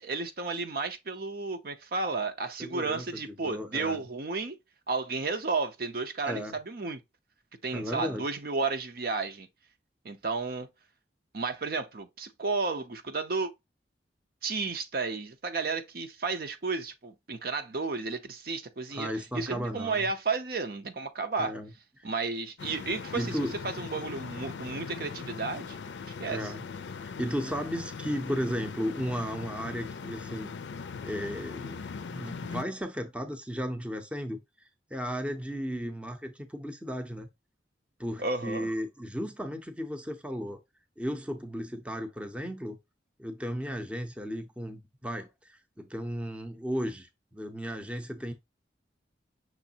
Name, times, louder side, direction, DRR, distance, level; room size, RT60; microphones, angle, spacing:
voice 1, 0.0-4.6 4.9-7.0 7.6-9.5 10.0-10.7 11.3-13.5 14.4-21.6 22.0-25.8 26.2-26.5 38.2-38.7, right 4 dB, 55° right, 0.7 m, -32 dB
voice 2, 2.6-4.0 6.3-6.6 7.7-8.2 18.9-20.1 21.4-21.7 22.0-22.1 23.1-23.5 26.3-26.6 27.0-30.5 31.0-34.4 34.9-37.3 38.0-40.6 41.0-42.8 43.2-48.3, equal, 5° right, 0.6 m, -35 dB
sound 1, 22.6-32.6, left 5 dB, 80° left, 0.4 m, -40 dB
6.1 x 3.1 x 2.7 m
head